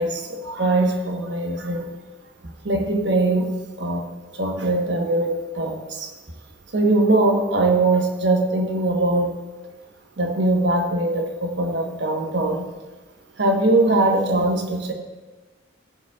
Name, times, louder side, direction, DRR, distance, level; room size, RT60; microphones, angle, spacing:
voice 1, 0.0-1.9 2.6-3.5 3.8-4.1 4.4-6.1 6.7-9.3 10.2-12.6 13.4-14.9, right 2 dB, 60° right, 2 dB, 1.2 m, -21 dB
14.0 x 7.9 x 2.4 m, 1.2 s
head